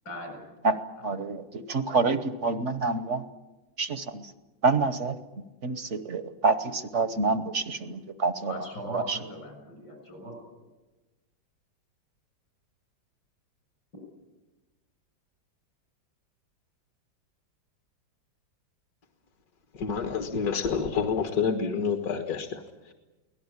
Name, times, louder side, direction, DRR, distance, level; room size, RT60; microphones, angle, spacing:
voice 1, 0.0-0.4 8.5-10.3, equal, 70° left, 3 dB, 7.6 m, -38 dB
voice 2, 1.0-3.2 3.8-4.3 4.6-5.2 5.6-8.5 8.9-9.2, right 3 dB, 45° right, 11 dB, 1.0 m, -27 dB
voice 3, 19.7-22.9, left 6 dB, 55° left, 6 dB, 1.9 m, -28 dB
24.0 x 18.0 x 9.7 m, 1.1 s
omnidirectional pair, 2.1 m